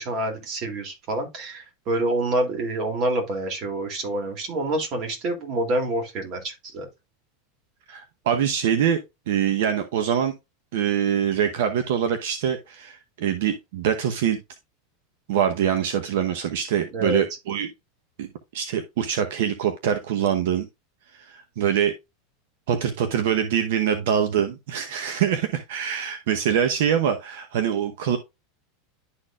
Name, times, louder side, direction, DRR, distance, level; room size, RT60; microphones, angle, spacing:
voice 1, 0.0-6.9 16.9-17.2, right 1 dB, 40° right, 2.7 m, -27 dB
voice 2, 7.9-9.0 9.3-10.3 10.7-14.4 15.3-17.7 18.2-18.3 18.5-20.7 21.1-21.9 22.7-28.2, right 9 dB, 75° right, 0.9 m, -24 dB
11.5 x 4.3 x 2.4 m
supercardioid pair, 155°, 0 cm